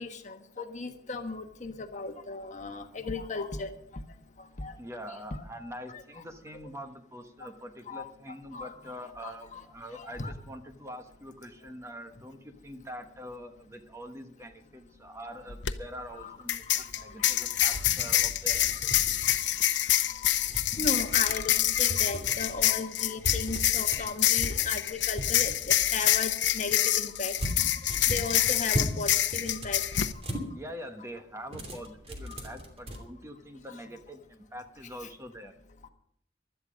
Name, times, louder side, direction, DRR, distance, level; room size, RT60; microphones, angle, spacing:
voice 1, 0.0-3.7 4.6-4.7 5.9-6.0 7.9-8.1 8.5-8.7 9.2-9.6 10.0-10.3 16.2-16.4 17.2-17.3 18.9-19.0 20.2-20.3 20.8-27.3 28.1-29.8 32.3-32.4, left 3 dB, 45° left, 6 dB, 1.4 m, -36 dB
voice 2, 4.8-19.1 30.5-35.6, equal, 15° right, 6 dB, 1.2 m, -44 dB
sound 1, 15.5-15.7 16.5-30.1, left 13 dB, 85° left, 0.8 m, -26 dB
sound 2, 17.4-19.7 20.4-21.5 21.9-22.7 23.2-25.9 27.4-29.0 29.3-30.5 31.5-33.0, equal, 35° right, 2.8 m, -37 dB
16.0 x 12.5 x 5.2 m, 0.70 s
head